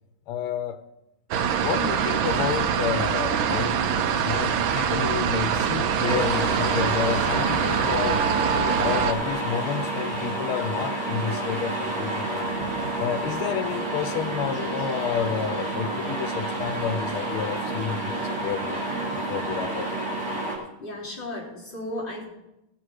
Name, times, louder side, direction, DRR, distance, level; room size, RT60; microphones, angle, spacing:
voice 1, 0.3-0.8 1.6-3.8 4.2-8.3 8.5-12.6 13.0-18.8 19.3-19.9, left 8 dB, 90° left, 10 dB, 1.5 m, -30 dB
sound 1, 1.3-9.1, right 7 dB, 75° right, 1.5 m, -24 dB
sound 2, 6.0-20.6, right 2 dB, 40° right, 4.1 m, -29 dB
voice 2, 20.8-22.2, left 1 dB, 25° left, -6 dB, 3.8 m, -34 dB
17.5 x 7.5 x 4.7 m, 0.92 s
omnidirectional pair, 2.3 m